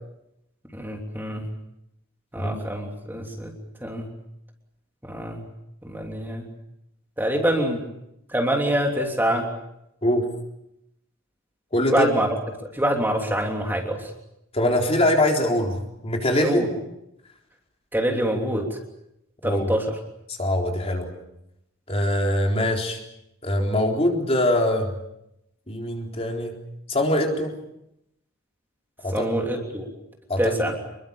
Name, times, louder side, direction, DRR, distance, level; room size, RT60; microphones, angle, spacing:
voice 1, 0.7-1.4 2.3-3.5 3.8-4.1 5.1-5.4 5.8-6.5 7.2-7.8 8.3-9.5 11.9-12.3 12.7-14.1 16.4-16.7 17.9-18.8 19.4-19.8 29.1-29.9 30.4-30.7, right 1 dB, 10° right, 1 dB, 3.2 m, -25 dB
voice 2, 11.7-12.1 14.5-16.7 19.4-19.7 20.3-21.1 21.9-23.0 23.4-25.0 25.7-26.5 26.9-27.5 29.0-29.3 30.3-30.5, left 1 dB, 30° left, 1 dB, 4.0 m, -23 dB
27.5 x 22.5 x 7.1 m, 0.82 s
head